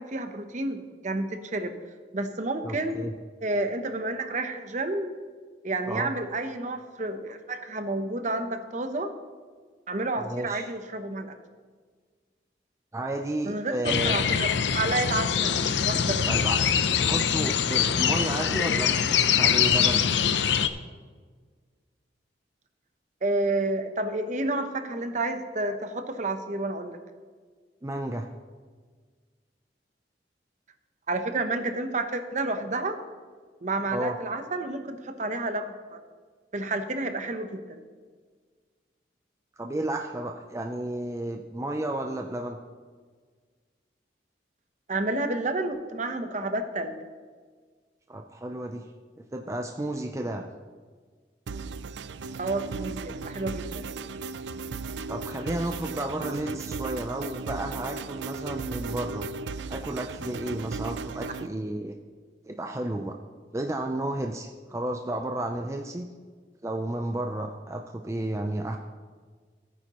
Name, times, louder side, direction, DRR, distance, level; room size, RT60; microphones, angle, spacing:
voice 1, 0.0-1.8 2.1-3.1 3.4-5.1 5.6-9.1 9.9-11.3 13.4-15.6 15.8-16.3 23.2-27.0 31.1-33.0 33.6-36.0 36.5-37.8 44.9-47.0 52.4-53.9, right 2 dB, 45° right, 8 dB, 0.8 m, -30 dB
voice 2, 2.6-3.1 5.9-6.1 10.2-10.7 12.9-14.2 16.3-16.7 17.0-20.1 27.8-28.3 33.9-34.2 39.6-42.6 48.1-48.9 49.2-50.5 55.1-59.3 59.7-61.9 62.5-63.2 63.5-66.1 66.6-68.8, right 1 dB, 15° right, 4 dB, 0.5 m, -32 dB
sound 1, 13.8-20.7, left 7 dB, 85° left, 0.6 m, -24 dB
sound 2, 51.5-61.5, right 4 dB, 80° right, 0.4 m, -36 dB
16.0 x 9.2 x 3.0 m, 1.5 s
head